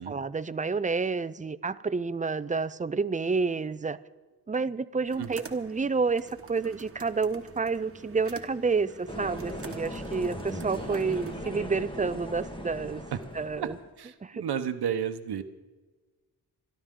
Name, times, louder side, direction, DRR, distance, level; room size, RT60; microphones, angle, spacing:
voice 1, 0.0-4.0 4.5-13.0 13.3-13.8 14.2-14.4, right 4 dB, 20° right, 14 dB, 0.5 m, -29 dB
sound 1, 5.1-11.3, right 4 dB, 35° right, 1.4 m, -47 dB
sound 2, 9.1-13.9, equal, 15° left, 1.6 m, -38 dB
voice 2, 14.0-15.4, right 8 dB, 80° right, 10 dB, 0.9 m, -32 dB
26.5 x 11.5 x 3.7 m, 1.3 s
wide cardioid pair, 115°, 39 cm